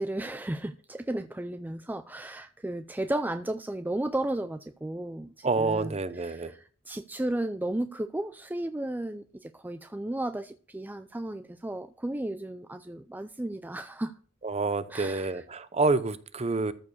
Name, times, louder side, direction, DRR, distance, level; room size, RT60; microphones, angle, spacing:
voice 1, 0.0-14.1 14.9-15.4, right 1 dB, 10° right, 0.4 m, -34 dB
voice 2, 5.4-6.5 14.4-16.7, right 3 dB, 35° right, 0.8 m, -28 dB
14.0 x 4.9 x 6.3 m
head